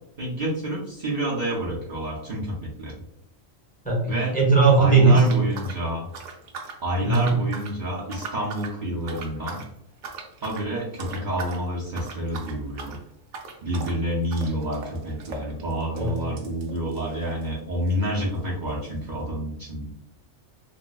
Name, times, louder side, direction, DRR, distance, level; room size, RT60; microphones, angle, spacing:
voice 1, 0.2-2.9 4.1-4.3 4.8-6.1 6.8-9.6 10.4-13.0 13.6-19.9, right 1 dB, 50° right, -5 dB, 0.7 m, -28 dB
voice 2, 3.8-5.2 7.0-7.2 16.0-16.1, right 4 dB, 10° left, -3 dB, 0.5 m, -18 dB
sound 1, 5.1-6.8 7.1-7.8 8.1-8.8 9.1-9.7 10.0-10.7 11.0-11.6 11.9-17.6 17.9-18.0 18.2-18.3 18.9-19.0, right 4 dB, 75° right, 1.0 m, -39 dB
3.0 x 2.8 x 2.2 m, 0.75 s
omnidirectional pair, 1.3 m